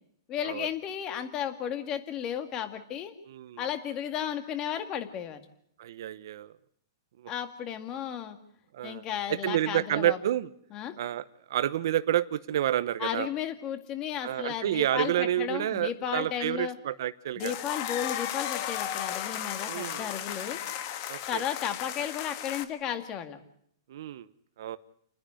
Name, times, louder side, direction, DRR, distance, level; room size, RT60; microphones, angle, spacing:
voice 1, 0.3-3.1 3.6-5.4 7.3-8.4 8.8-10.2 10.7-10.9 13.0-16.7 17.4-20.6 21.3-23.4, left 9 dB, 30° left, 9 dB, 2.1 m, -34 dB
voice 2, 3.3-3.6 5.8-6.5 7.2-7.3 8.7-10.5 11.0-13.3 14.2-17.5 19.7-20.1 21.1-21.4 23.9-24.3 24.6-24.8, right 12 dB, 65° right, 13 dB, 0.9 m, -29 dB
sound 1, 17.4-22.6, left 11 dB, 45° left, 1.5 m, -35 dB
29.5 x 10.5 x 9.7 m, 0.67 s
hypercardioid pair, 150°, 2 cm